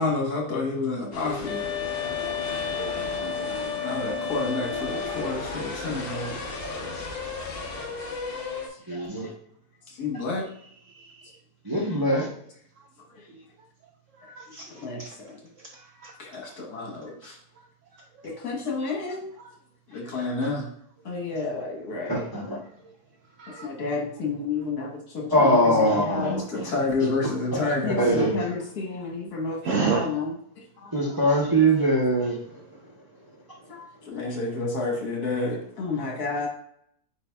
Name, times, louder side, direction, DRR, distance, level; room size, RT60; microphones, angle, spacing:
voice 1, 0.0-1.8 3.8-6.4 9.9-10.5 13.2-13.3 14.7-15.4 16.2-17.4 18.2-19.3 19.9-20.7 21.1-22.3 23.6-30.3 30.8-30.9 33.7-36.5, left 3 dB, 70° left, 0 dB, 1.7 m, -30 dB
sound 1, 1.1-8.7, left 3 dB, 50° left, 0.7 m, -35 dB
sound 2, 1.4-5.6, left 7 dB, 85° left, 1.2 m, -32 dB
voice 2, 8.9-9.3 11.6-12.3 22.0-22.6 25.3-26.7 27.5-27.6 28.0-28.3 30.9-32.6, right 1 dB, 20° right, -4 dB, 0.6 m, -22 dB
voice 3, 10.9-11.3 14.2-15.2 15.6-16.1 18.2-18.3 19.4-19.5 23.4-23.7 29.6-30.1 31.0-31.2, right 6 dB, 70° right, 2 dB, 0.7 m, -31 dB
8.3 x 2.8 x 2.3 m, 0.67 s
omnidirectional pair, 1.8 m